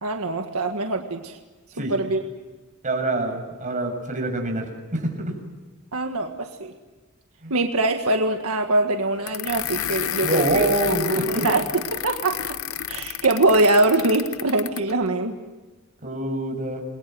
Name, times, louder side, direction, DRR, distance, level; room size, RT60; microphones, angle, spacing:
voice 1, 0.0-1.4 1.9-2.2 5.9-6.7 7.5-10.7 11.3-11.6 11.9-12.6 12.9-15.4, right 2 dB, 80° right, 4 dB, 1.8 m, -23 dB
voice 2, 2.8-5.3 7.4-7.5 10.2-11.5 16.0-16.8, right 2 dB, 35° right, 3 dB, 7.0 m, -25 dB
sound 1, 9.3-14.9, left 11 dB, 65° left, 0.7 m, -31 dB
29.5 x 22.0 x 7.8 m, 1.3 s
head